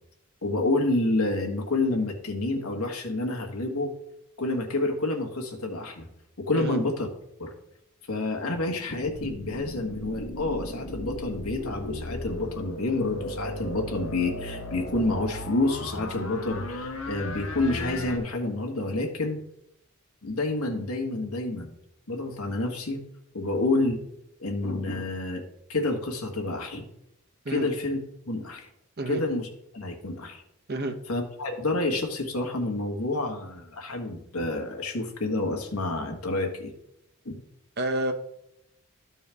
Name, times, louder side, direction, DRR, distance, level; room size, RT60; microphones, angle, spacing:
voice 1, 0.4-3.9 4.4-6.1 6.4-7.1 7.4-7.5 8.1-19.4 20.2-21.7 22.1-23.0 23.3-24.0 24.4-25.4 25.7-26.9 27.5-28.0 28.3-28.7 29.1-29.5 29.7-30.4 31.1-36.7 37.2-37.4, left 2 dB, 85° left, 1 dB, 1.6 m, -28 dB
sound 1, 8.9-18.2, left 1 dB, 65° left, 1.1 m, -36 dB
voice 2, 37.8-38.1, right 1 dB, 50° right, 6 dB, 0.9 m, -29 dB
13.5 x 4.6 x 3.5 m, 0.79 s
head